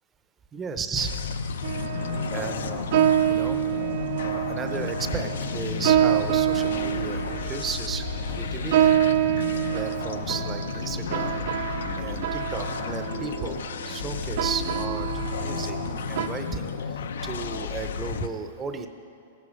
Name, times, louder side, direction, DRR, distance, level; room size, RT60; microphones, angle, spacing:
voice 1, 0.5-1.3 2.3-3.6 4.2-8.9 9.7-11.4 11.9-15.8 16.1-18.9, right 5 dB, 15° right, 7 dB, 0.7 m, -34 dB
sound 1, 0.9-18.3, left 6 dB, 90° left, 0.7 m, -32 dB
sound 2, 1.6-16.3, right 11 dB, 50° right, 0.5 m, -27 dB
15.0 x 9.8 x 6.4 m, 2.7 s
supercardioid pair, 165°, 0 cm